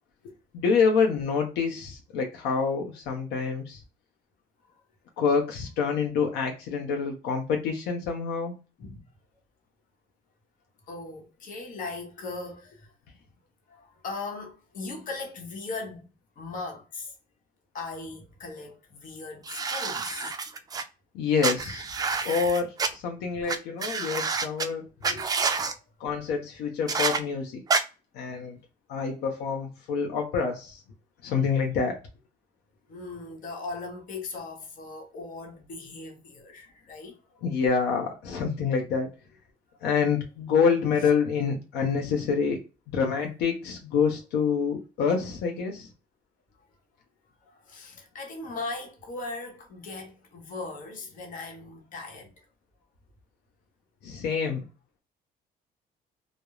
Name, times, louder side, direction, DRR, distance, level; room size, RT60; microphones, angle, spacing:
voice 1, 0.5-3.8 5.2-8.5 21.1-21.8 22.2-25.2 26.0-27.6 28.1-28.6 28.9-30.8 31.2-32.0 37.4-39.1 39.8-42.6 42.9-45.9 54.0-54.6, left 5 dB, 85° left, 0.6 m, -27 dB
voice 2, 10.9-12.9 13.7-16.1 16.4-17.2 17.7-20.4 32.9-37.2 47.4-52.3, left 3 dB, 50° left, 0.9 m, -38 dB
sound 1, 19.4-20.8 21.4-22.9 23.5-23.6 23.8-24.7 25.0-25.7 26.9-27.2 27.7-27.8, right 4 dB, 25° right, 0.3 m, -28 dB
2.3 x 2.0 x 2.9 m
cardioid pair, 110°, 17 cm